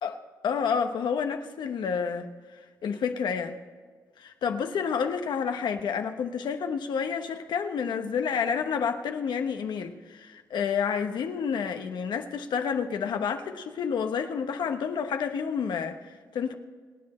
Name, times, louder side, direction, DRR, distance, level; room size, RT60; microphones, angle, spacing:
voice 1, 0.4-2.3 2.8-3.6 4.2-16.5, left 6 dB, 85° left, 6 dB, 1.1 m, -29 dB
25.0 x 8.6 x 4.4 m, 1.5 s
cardioid pair, 70°, 8 cm